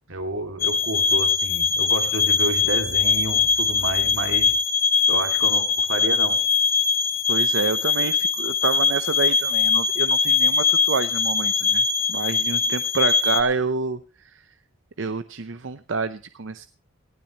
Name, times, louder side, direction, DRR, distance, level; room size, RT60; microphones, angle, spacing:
voice 1, 0.1-4.5 5.1-6.4, right 2 dB, 90° right, 6 dB, 2.4 m, -30 dB
sound 1, 0.6-13.4, left 5 dB, 45° left, 1.3 m, -21 dB
voice 2, 7.3-11.8 12.1-14.0 15.0-16.7, right 4 dB, 70° right, 11 dB, 0.7 m, -27 dB
18.5 x 15.0 x 3.0 m, 0.35 s
head